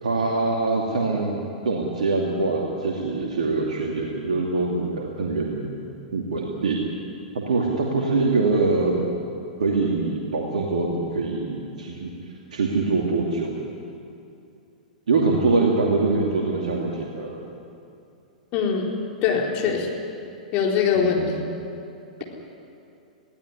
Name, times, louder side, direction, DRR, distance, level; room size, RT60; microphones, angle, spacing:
voice 1, 0.0-1.4 1.6-5.8 6.1-6.8 7.3-9.0 9.6-12.1 12.5-13.6 15.1-17.4 20.9-21.4, right 3 dB, 65° right, -1 dB, 2.7 m, -24 dB
voice 2, 18.5-18.9 19.2-19.9 20.5-21.3, left 7 dB, 35° left, -1 dB, 4.3 m, -22 dB
21.5 x 16.0 x 9.7 m, 2.6 s
figure-of-eight pair, 100°, 4 cm